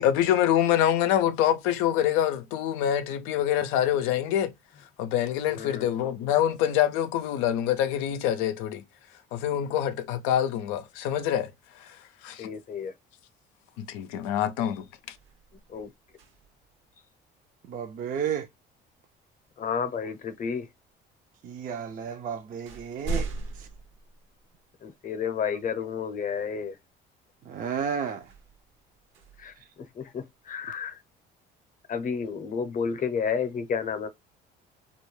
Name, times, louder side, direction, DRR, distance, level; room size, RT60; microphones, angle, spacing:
voice 1, 0.0-4.5 5.0-8.8 9.3-11.5 11.8-12.0 12.2-12.5 13.8-14.9, left 11 dB, 90° left, 0.4 m, -25 dB
voice 2, 5.5-5.9 12.4-12.9 15.7-15.9 19.6-20.7 24.8-26.8 29.4-31.0 31.9-34.1, left 6 dB, 40° left, 0.7 m, -31 dB
sound 1, 14.7-16.8 18.9-19.1 19.9-20.7 21.6-21.7 22.1-24.9 25.4-25.5 28.1-30.3, right 3 dB, 70° right, 0.7 m, -39 dB
voice 3, 17.7-18.5 21.4-23.3 23.5-23.7 27.4-28.3 29.6-29.7, right 7 dB, 40° right, 0.5 m, -32 dB
2.3 x 2.2 x 3.1 m
supercardioid pair, 80°, 21 cm